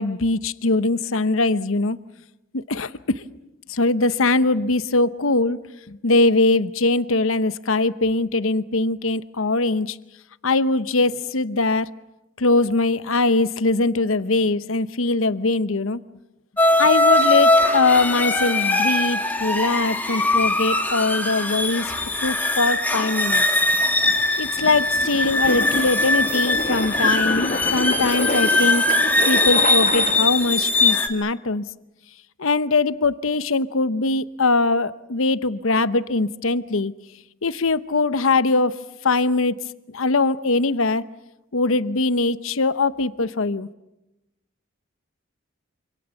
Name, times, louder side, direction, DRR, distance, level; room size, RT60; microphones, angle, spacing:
voice 1, 0.0-2.0 2.5-3.2 3.7-5.6 5.9-10.0 10.4-11.9 12.4-16.0 16.8-21.9 22.2-23.4 24.4-28.9 29.3-31.7 32.4-37.0 37.4-38.7 39.0-41.0 41.5-43.7, left 3 dB, 75° left, 14 dB, 0.9 m, -21 dB
sound 1, 16.6-31.1, left 2 dB, 10° left, 2.2 m, -21 dB
sound 2, 23.0-30.6, left 2 dB, 40° left, 1.3 m, -29 dB
27.0 x 27.0 x 7.1 m, 0.94 s
head